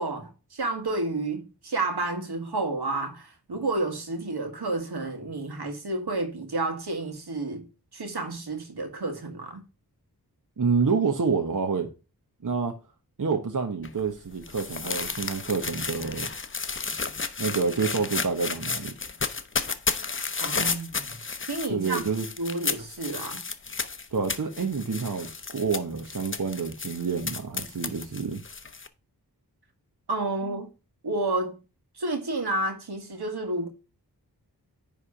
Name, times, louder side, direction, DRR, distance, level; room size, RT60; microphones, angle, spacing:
voice 1, 0.0-7.7 7.9-9.6 20.4-21.2 21.5-22.0 22.4-23.4 30.1-30.7 31.0-31.6 31.9-33.7, right 2 dB, 80° right, 1.8 m, -30 dB
voice 2, 10.6-11.9 12.4-12.8 13.2-16.3 17.4-18.9 21.7-22.3 24.1-28.4, right 5 dB, 55° right, 1.1 m, -28 dB
sound 1, 13.8-28.9, left 4 dB, 30° left, 0.7 m, -33 dB
9.8 x 3.6 x 5.7 m
wide cardioid pair, 70°, 38 cm